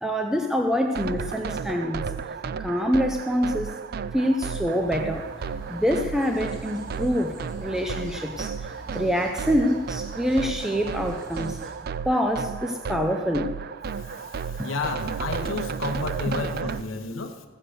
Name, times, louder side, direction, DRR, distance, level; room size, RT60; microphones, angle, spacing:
voice 1, 0.0-2.0 2.6-3.8 4.1-11.6 12.0-13.5 14.6-14.7 16.3-16.4, equal, 5° right, 3 dB, 0.6 m, -26 dB
sound 1, 1.0-16.8, right 6 dB, 50° right, 0.4 m, -33 dB
sound 2, 4.7-11.7, equal, 90° right, 4.4 m, -45 dB
voice 2, 14.1-17.4, left 3 dB, 85° left, 4 dB, 1.0 m, -31 dB
15.0 x 7.7 x 6.7 m, 1.5 s
head